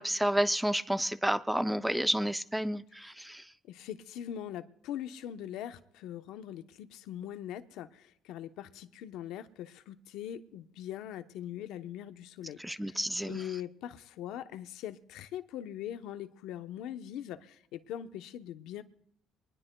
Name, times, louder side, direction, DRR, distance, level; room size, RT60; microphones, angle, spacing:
voice 1, 0.0-3.5 12.6-13.4, right 1 dB, 5° right, 0.5 m, -30 dB
voice 2, 3.7-13.0 13.2-18.8, left 11 dB, 80° left, 0.9 m, -42 dB
23.5 x 20.0 x 2.3 m
cardioid pair, 115°, 0 cm